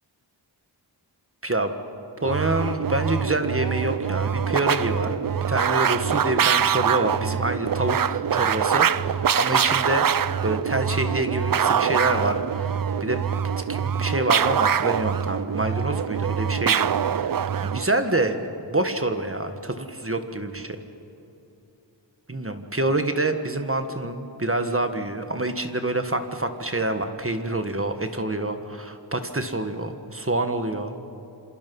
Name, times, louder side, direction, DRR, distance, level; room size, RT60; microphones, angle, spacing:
voice 1, 2.2-5.2 5.5-10.1 10.4-13.2 13.6-16.9 17.2-17.3 17.6-20.8 22.3-30.9, right 2 dB, 30° right, 7 dB, 1.6 m, -26 dB
sound 1, 2.2-17.9, right 8 dB, 50° right, 0.5 m, -24 dB
29.0 x 27.0 x 5.5 m, 2.8 s
wide cardioid pair, 75°, 46 cm